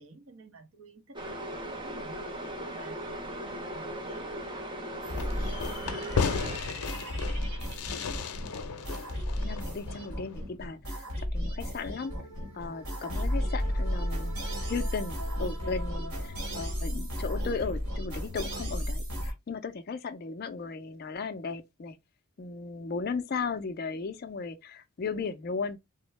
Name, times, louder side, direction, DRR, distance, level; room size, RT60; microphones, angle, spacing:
voice 1, 0.0-7.3, right 3 dB, 65° right, 0.8 m, -53 dB
sound 1, 1.1-6.6, right 1 dB, 20° right, 0.5 m, -38 dB
sound 2, 5.0-19.3, equal, 85° right, 1.4 m, -34 dB
Fireworks, 5.2-10.4, left 5 dB, 90° left, 0.6 m, -35 dB
voice 2, 9.4-11.0 11.3-12.1 12.5-14.4 14.7-22.0 22.4-25.8, left 4 dB, 45° left, 0.3 m, -36 dB
3.6 x 2.0 x 3.1 m
head